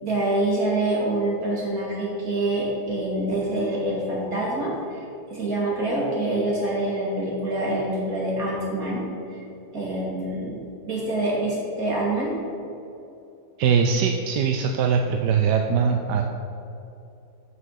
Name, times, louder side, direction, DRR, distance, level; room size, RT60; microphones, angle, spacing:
voice 1, 0.0-9.0 9.3-9.4 9.7-10.6 10.8-12.3, right 1 dB, 45° right, -5 dB, 3.3 m, -26 dB
voice 2, 13.6-16.2, right 6 dB, 70° right, 4 dB, 1.2 m, -21 dB
13.5 x 5.7 x 5.8 m, 2.8 s
omnidirectional pair, 2.1 m